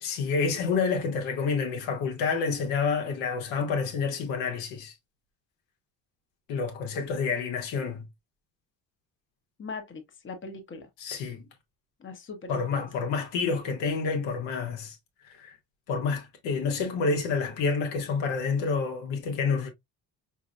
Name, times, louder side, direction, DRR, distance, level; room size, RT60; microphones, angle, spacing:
voice 1, 0.0-4.9 6.5-8.1 11.0-11.4 12.5-15.0 15.3-15.5 15.9-19.7, left 5 dB, 60° left, 1.2 m, -28 dB
voice 2, 9.6-10.9 12.0-12.9, left 4 dB, 25° left, 1.1 m, -40 dB
4.9 x 2.9 x 2.3 m
figure-of-eight pair, 50°, 50 cm